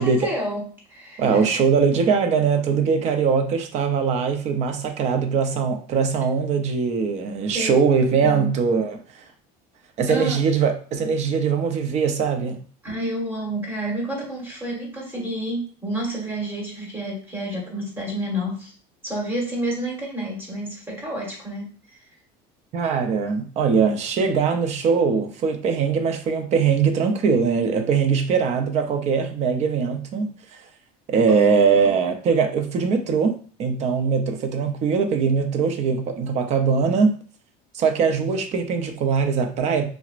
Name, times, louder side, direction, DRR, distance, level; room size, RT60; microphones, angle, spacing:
voice 1, 0.0-1.6 7.5-7.9 8.2-8.5 10.1-10.4 12.8-18.7 19.0-22.0 31.3-31.9, right 1 dB, 10° right, -2 dB, 1.4 m, -30 dB
voice 2, 1.2-9.0 10.0-12.6 22.7-30.3 31.1-37.2 37.7-39.9, right 5 dB, 40° right, 7 dB, 0.6 m, -21 dB
5.8 x 2.1 x 2.5 m, 0.42 s
cardioid pair, 155°, 18 cm